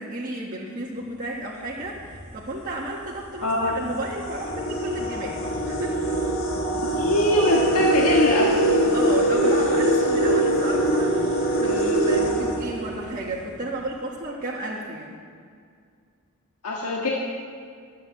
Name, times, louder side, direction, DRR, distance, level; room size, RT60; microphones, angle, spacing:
voice 1, 0.0-5.4 5.6-6.0 8.9-15.2, right 1 dB, 35° right, -5 dB, 1.5 m, -33 dB
sound 1, 1.9-2.2 3.0-3.1 3.6-13.3, right 1 dB, 60° left, 1.9 m, -23 dB
voice 2, 3.4-3.8 7.0-8.6 16.6-17.1, left 1 dB, 90° left, -3 dB, 1.6 m, -22 dB
12.5 x 9.1 x 7.4 m, 2.2 s
head